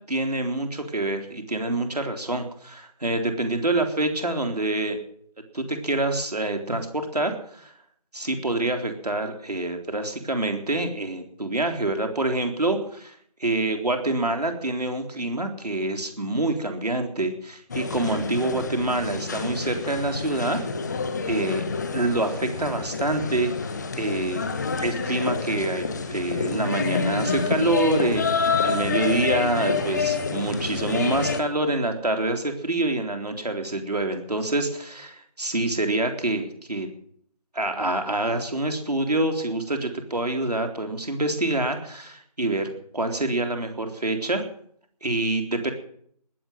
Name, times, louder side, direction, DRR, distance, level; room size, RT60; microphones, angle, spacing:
voice 1, 0.1-5.0 5.5-7.7 8.1-20.6 21.3-21.7 21.9-23.5 23.9-24.4 24.8-36.9 37.5-44.4 45.0-45.7, right 2 dB, 75° right, 5 dB, 3.8 m, -26 dB
sound 1, 17.7-31.4, left 4 dB, ahead, 0.6 m, -28 dB
20.0 x 7.8 x 9.1 m, 0.64 s
figure-of-eight pair, 160°, 20 cm